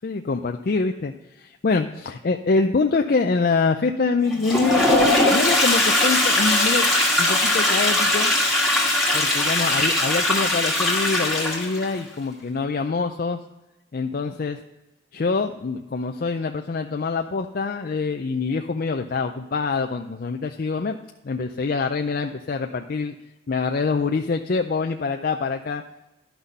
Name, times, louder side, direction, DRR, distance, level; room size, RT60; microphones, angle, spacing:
voice 1, 0.0-6.9 7.2-8.3 9.1-13.4 13.9-14.6 15.1-21.0 21.2-23.1 23.5-25.8, left 4 dB, 45° left, 5 dB, 0.4 m, -25 dB
Toilet flush, 4.3-11.9, left 1 dB, ahead, 2.0 m, -20 dB
11.5 x 6.1 x 5.3 m, 1.0 s
head